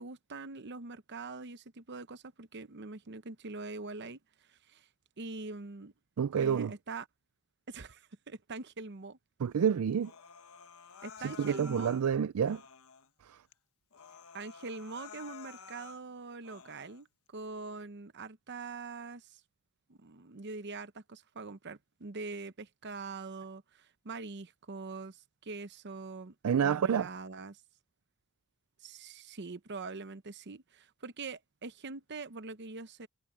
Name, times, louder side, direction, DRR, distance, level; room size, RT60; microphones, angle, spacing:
voice 1, 0.0-4.2 4.5-4.9 5.2-5.9 6.4-7.1 7.7-9.2 11.0-12.0 14.3-19.4 19.9-26.3 26.6-27.6 28.8-33.1, right 3 dB, 55° right, 0.9 m, -43 dB
voice 2, 6.2-6.7 9.4-10.1 11.2-12.6 13.3-13.4 26.4-27.1, right 7 dB, 90° right, 0.4 m, -28 dB
Human voice, 10.0-12.0 12.4-13.1 13.5-13.6 13.9-16.0 16.4-17.0, left 6 dB, 80° left, 1.3 m, -51 dB
head